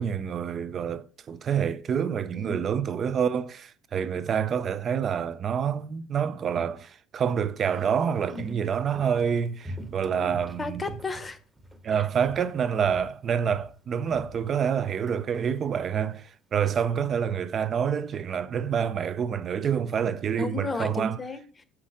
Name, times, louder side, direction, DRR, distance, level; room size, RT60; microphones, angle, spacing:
voice 1, 0.0-10.8 11.8-21.2, right 7 dB, 30° right, 0.5 m, -27 dB
Walk footsteps, 7.6-11.9 12.2-12.6 12.8-15.2 15.4-15.5, right 1 dB, 10° right, 1.0 m, -43 dB
voice 2, 8.3-8.7 10.1-11.4 20.4-21.6, left 3 dB, 15° left, 0.9 m, -34 dB
7.3 x 6.0 x 4.9 m
cardioid pair, 150°, 0 cm